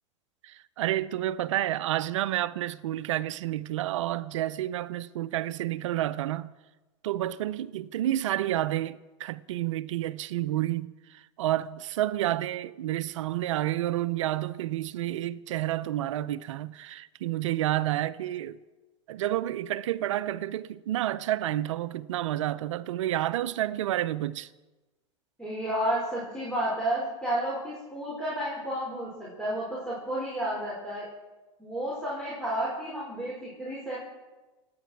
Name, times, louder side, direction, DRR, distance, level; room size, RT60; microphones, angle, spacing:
voice 1, 0.4-6.5 7.0-18.6 19.1-24.5, right 13 dB, 80° right, 0.6 m, -30 dB
voice 2, 25.4-31.1 31.6-34.0, right 1 dB, 5° left, 5.2 m, -31 dB
28.0 x 9.4 x 4.6 m
hypercardioid pair, 100°, 16 cm